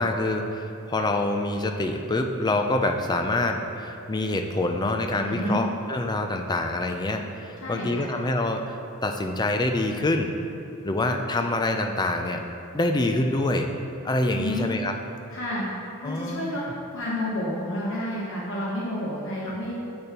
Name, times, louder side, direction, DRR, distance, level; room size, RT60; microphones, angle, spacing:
voice 1, 0.0-10.4 10.8-12.4 12.7-13.7 14.0-14.9 16.0-16.5 19.5-19.6, left 2 dB, 20° left, 5 dB, 0.4 m, -26 dB
voice 2, 5.3-5.6 7.6-8.1 14.3-14.7 15.3-15.7 16.0-16.6 16.9-19.8, left 1 dB, 60° left, -5 dB, 1.0 m, -30 dB
6.9 x 6.7 x 2.9 m, 2.8 s
head